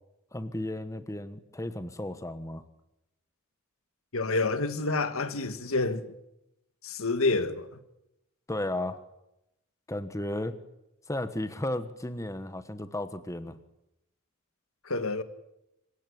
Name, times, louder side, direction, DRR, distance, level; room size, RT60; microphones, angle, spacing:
voice 1, 0.3-2.6 8.5-9.0 9.9-10.5 11.1-13.6, left 1 dB, 15° left, 1.3 m, -34 dB
voice 2, 4.1-6.1 6.8-7.8 14.8-15.2, left 3 dB, 75° left, 1.9 m, -28 dB
26.5 x 16.5 x 9.9 m
head